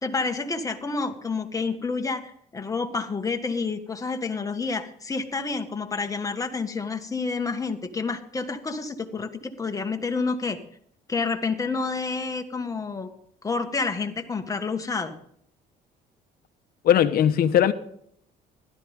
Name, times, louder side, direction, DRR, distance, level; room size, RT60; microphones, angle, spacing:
voice 1, 0.0-10.6 11.1-13.1 13.4-15.1, left 4 dB, 20° left, 1.7 m, -29 dB
voice 2, 16.8-17.7, left 10 dB, 60° left, 1.2 m, -19 dB
16.5 x 13.0 x 3.7 m
cardioid pair, 110°, 17 cm